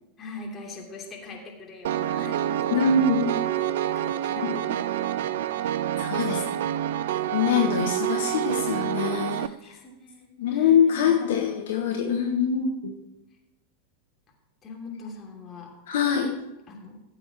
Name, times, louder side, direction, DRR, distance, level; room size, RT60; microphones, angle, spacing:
voice 1, 0.2-3.3 3.8-6.7 9.3-11.2 14.6-15.7 16.7-17.0, left 3 dB, 20° left, -1 dB, 2.9 m, -43 dB
Piano, 1.8-9.5, right 11 dB, 55° right, 0.4 m, -27 dB
voice 2, 2.7-3.3 4.3-4.6 5.9-6.4 7.3-9.5 10.4-12.9 15.9-16.3, left 6 dB, 60° left, 2 dB, 1.2 m, -24 dB
15.5 x 7.8 x 4.7 m, 0.96 s
figure-of-eight pair, 90°, 0 cm